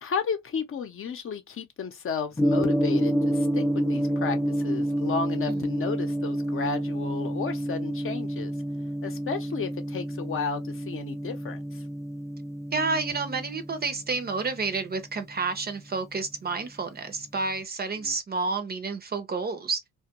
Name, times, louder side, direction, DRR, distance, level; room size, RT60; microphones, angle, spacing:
voice 1, 0.0-8.5 9.0-11.8 18.0-18.2, left 6 dB, 45° left, 0.7 m, -33 dB
Gong, 2.4-16.5, equal, 10° left, 0.4 m, -29 dB
voice 2, 12.7-19.8, right 4 dB, 30° right, 0.6 m, -30 dB
2.2 x 2.2 x 2.8 m
cardioid pair, 90°, 30 cm